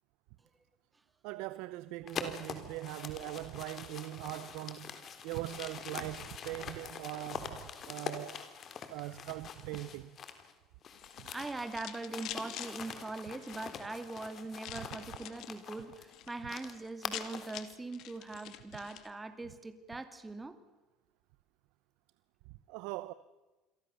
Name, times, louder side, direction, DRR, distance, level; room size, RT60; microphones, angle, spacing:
voice 1, 1.2-4.9 5.2-8.4 8.9-10.2 11.2-11.3 22.7-23.1, right 17 dB, 80° right, 0.8 m, -41 dB
sound 1, 2.1-10.5 10.8-17.6, left 7 dB, 45° left, 3.6 m, -44 dB
sound 2, 10.9-12.7 13.3-13.9 14.6-15.6 15.9-16.3 16.6-16.7 16.9-19.1, left 12 dB, 65° left, 2.3 m, -46 dB
voice 2, 11.2-20.6, right 3 dB, 15° right, 2.7 m, -42 dB
29.0 x 22.5 x 7.0 m
supercardioid pair, 100°, 0 cm